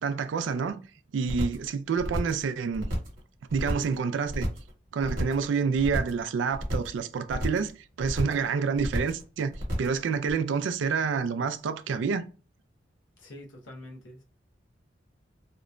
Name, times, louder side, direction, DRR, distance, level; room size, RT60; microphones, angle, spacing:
voice 1, 0.0-0.8 1.1-2.9 3.5-4.5 4.9-7.7 8.0-9.5 9.8-12.2, right 5 dB, 80° right, 0.3 m, -28 dB
sound 1, 1.3-1.7 2.0-2.4 2.7-3.2 3.5-4.0 4.3-4.7 5.0-5.5 5.8-6.2 6.5-7.0 7.3-7.7 8.0-8.5 8.8-9.2 9.5-10.0 10.3-10.4, equal, 50° right, 1.0 m, -31 dB
voice 2, 13.2-14.2, left 1 dB, 85° left, 0.7 m, -45 dB
2.9 x 2.1 x 2.4 m
head